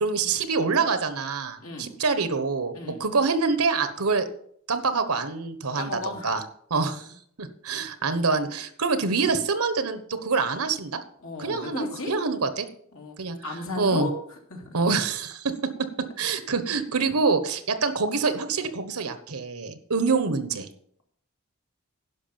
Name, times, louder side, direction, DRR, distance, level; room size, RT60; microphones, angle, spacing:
voice 1, 0.0-4.3 4.7-6.4 6.7-7.1 7.4-11.0 11.4-12.7 13.2-13.4 13.8-14.1 14.7-20.7, right 4 dB, 85° right, 10 dB, 1.2 m, -26 dB
voice 2, 1.6-1.9 2.7-3.0 5.8-6.3 11.2-12.1 12.9-14.1 14.5-14.8, left 3 dB, 75° left, 1 dB, 2.5 m, -35 dB
11.0 x 5.8 x 7.0 m, 0.66 s
head